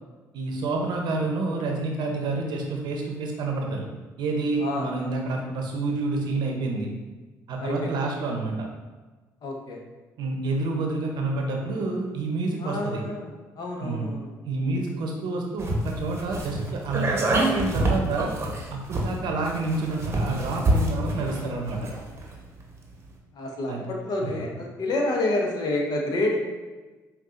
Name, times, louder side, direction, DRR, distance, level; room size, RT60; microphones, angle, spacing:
voice 1, 0.3-3.8 4.2-6.9 7.5-8.5 10.2-13.0 13.8-14.1 14.4-18.3 18.7-21.9 23.7-23.8, right 3 dB, 60° right, 1 dB, 0.7 m, -28 dB
voice 2, 4.6-5.1 7.6-7.9 9.4-9.8 12.6-13.3 13.6-14.2 23.4-26.4, left 2 dB, 55° left, 0 dB, 0.8 m, -28 dB
sound 1, 15.6-22.3 22.6-22.7, right 1 dB, 30° right, 0.9 m, -27 dB
5.3 x 2.4 x 2.5 m, 1.3 s
hypercardioid pair, 55°, 8 cm